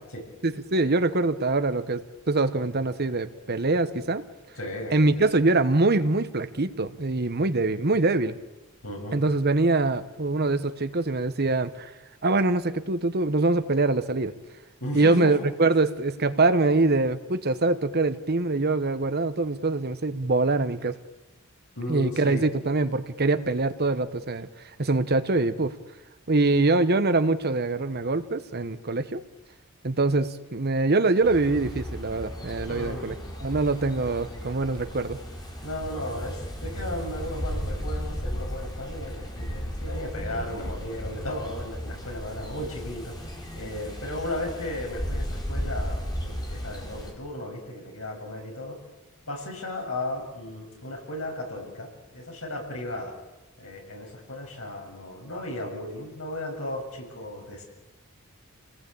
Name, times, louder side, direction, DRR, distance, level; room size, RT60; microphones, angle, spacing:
voice 1, 0.4-4.2 4.9-8.3 9.1-11.9 12.2-14.3 14.9-21.0 21.9-24.5 24.8-25.7 26.3-29.2 29.8-33.1 33.4-35.2, right 3 dB, 50° right, 12 dB, 1.1 m, -24 dB
voice 2, 4.5-5.4 8.8-9.2 14.8-15.4 21.8-22.5 32.7-33.1 35.6-43.2 43.5-48.8 49.3-53.2 53.6-57.6, left 1 dB, 75° left, 1 dB, 7.2 m, -35 dB
sound 1, 31.2-47.1, equal, 20° left, 4.8 m, -35 dB
28.5 x 19.0 x 8.6 m, 1.1 s
head